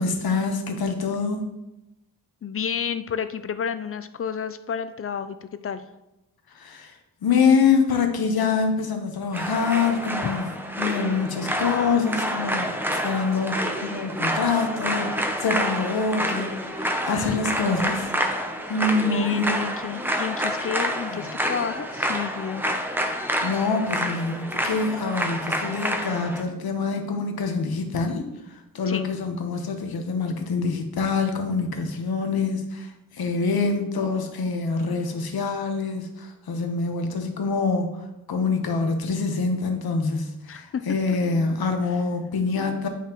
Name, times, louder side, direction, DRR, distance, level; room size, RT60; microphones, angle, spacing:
voice 1, 0.0-1.4 6.5-10.5 10.8-18.1 18.7-19.6 21.1-21.3 23.4-28.2 28.7-38.0 38.3-42.9, left 4 dB, 85° left, 5 dB, 1.1 m, -25 dB
voice 2, 2.4-5.8 17.1-17.4 17.8-18.0 18.6-18.7 19.1-22.6 28.9-29.1 40.5-40.8, left 7 dB, 40° left, 12 dB, 0.4 m, -31 dB
sound 1, 9.3-26.4, equal, 5° right, 0.6 m, -28 dB
9.4 x 5.7 x 3.0 m, 0.94 s
wide cardioid pair, 160°, 36 cm